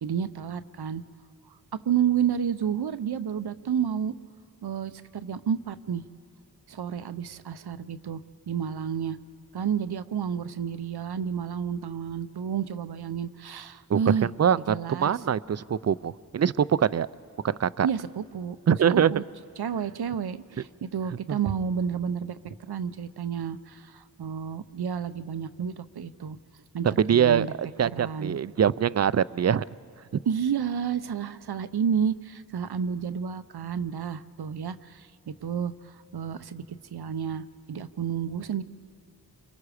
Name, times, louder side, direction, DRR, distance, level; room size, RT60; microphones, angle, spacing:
voice 1, 0.0-1.0 1.8-4.1 4.6-6.0 6.7-8.2 8.5-9.2 9.5-14.3 14.7-15.2 17.8-18.6 18.9-19.2 19.6-26.4 26.7-27.5 27.8-28.4 30.3-35.7 36.1-38.6, right 7 dB, 80° right, 13 dB, 0.7 m, -30 dB
voice 2, 13.9-17.1 17.4-17.9 18.7-19.1 21.3-21.4 26.8-29.6, right 8 dB, 45° right, 18 dB, 0.5 m, -23 dB
28.5 x 23.5 x 5.0 m, 2.2 s
cardioid pair, 45°, 38 cm